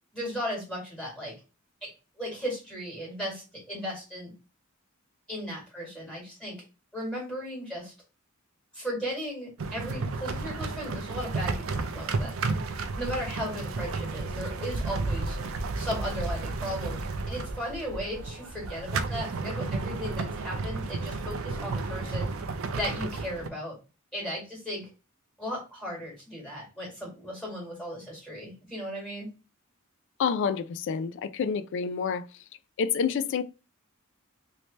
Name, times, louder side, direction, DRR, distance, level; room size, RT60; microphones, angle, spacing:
voice 1, 0.1-1.3 2.2-4.3 5.3-6.6 6.9-7.9 8.7-12.3 13.0-15.4 15.8-22.3 22.8-23.8 24.1-24.9 25.4-29.3, equal, 5° left, 1.8 m, -36 dB
sound 1, 9.6-23.5, right 3 dB, 70° right, 0.5 m, -32 dB
voice 2, 30.2-32.3 32.8-33.4, left 6 dB, 60° left, 0.3 m, -28 dB
3.1 x 2.7 x 3.1 m
head